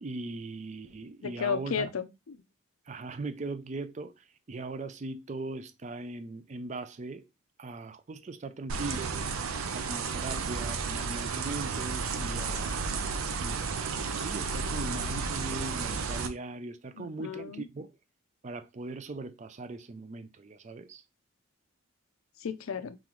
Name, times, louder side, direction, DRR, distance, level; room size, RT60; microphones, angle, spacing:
voice 1, 0.0-1.9 2.9-7.2 7.6-9.3 9.7-13.0 13.4-17.9 18.4-21.0, right 2 dB, 35° right, 0.4 m, -40 dB
voice 2, 1.2-2.4 16.9-17.7 22.4-23.0, left 6 dB, 85° left, 0.5 m, -34 dB
sound 1, 8.7-16.3, right 5 dB, 85° right, 0.6 m, -32 dB
3.8 x 3.8 x 3.0 m
head